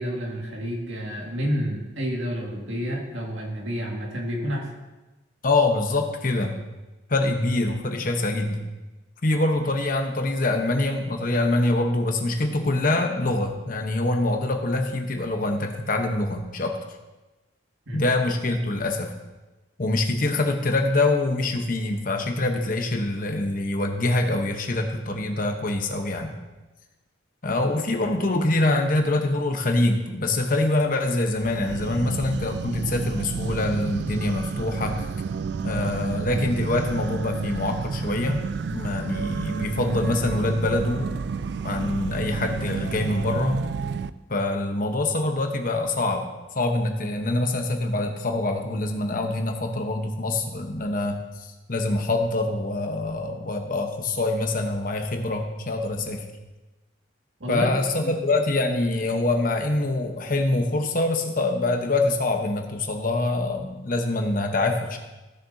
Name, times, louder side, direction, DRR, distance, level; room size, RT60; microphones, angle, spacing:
voice 1, 0.0-4.7 17.9-18.0 57.4-57.7 58.0-58.1, equal, 90° right, -1 dB, 2.0 m, -29 dB
voice 2, 5.4-6.6 7.1-8.6 9.2-16.8 17.9-19.1 19.8-26.3 27.4-35.0 35.6-41.2 41.6-43.6 44.3-46.3 46.5-56.2 57.5-65.0, left 2 dB, 45° left, 4 dB, 1.0 m, -25 dB
sound 1, 31.4-44.1, right 5 dB, 60° right, 0.3 m, -31 dB
15.5 x 6.8 x 2.7 m, 1.1 s
head